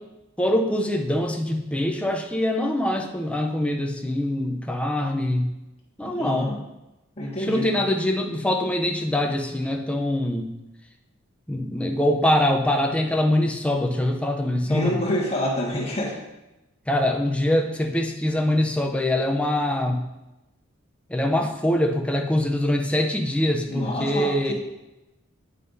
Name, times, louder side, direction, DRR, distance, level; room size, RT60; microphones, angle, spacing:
voice 1, 0.4-5.5 6.0-6.5 7.4-10.5 11.5-15.0 16.9-20.1 21.1-24.5, left 1 dB, 5° left, 2 dB, 0.6 m, -24 dB
voice 2, 6.0-6.6 7.2-7.8 14.6-16.2 23.7-24.5, left 1 dB, 30° left, -4 dB, 1.5 m, -27 dB
9.5 x 5.6 x 2.7 m, 0.98 s
head